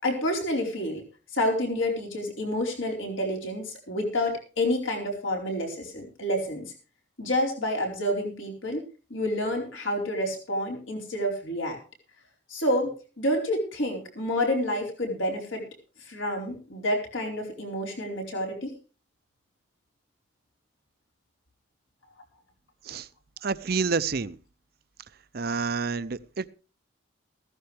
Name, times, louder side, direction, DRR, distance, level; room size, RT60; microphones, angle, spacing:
voice 1, 0.0-1.0 1.3-6.6 7.2-8.8 9.1-11.8 12.5-15.6 16.0-18.7, left 1 dB, 70° left, 1 dB, 4.5 m, -29 dB
voice 2, 23.4-24.4 25.3-26.5, right 4 dB, 50° right, 15 dB, 0.6 m, -28 dB
15.5 x 14.0 x 3.4 m, 0.34 s
head